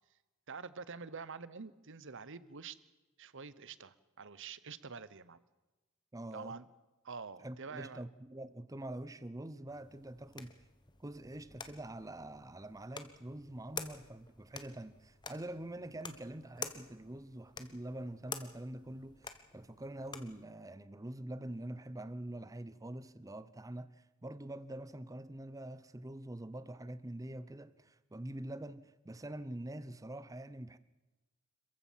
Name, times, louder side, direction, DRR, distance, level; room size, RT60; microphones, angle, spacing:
voice 1, 0.5-2.8 3.2-5.4 6.3-6.6 7.0-8.0, right 5 dB, 55° right, 1.0 m, -46 dB
voice 2, 6.1-6.6 7.4-10.5 11.0-30.8, right 1 dB, 15° right, 0.7 m, -45 dB
sound 1, 9.7-20.4, left 5 dB, 20° left, 1.3 m, -49 dB
26.5 x 15.0 x 7.4 m
head